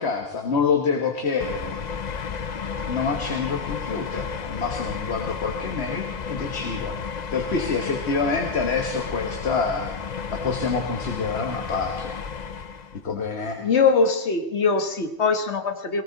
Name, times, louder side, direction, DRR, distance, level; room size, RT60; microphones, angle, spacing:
voice 1, 0.0-1.8 2.9-6.9 7.3-9.9 10.3-12.2 13.0-13.6, left 5 dB, 75° left, 4 dB, 1.6 m, -27 dB
sound 1, 1.4-13.0, left 6 dB, 45° left, 0.7 m, -32 dB
voice 2, 13.6-16.0, left 5 dB, 90° left, 7 dB, 1.6 m, -22 dB
19.5 x 18.0 x 4.0 m, 1.0 s
omnidirectional pair, 1.1 m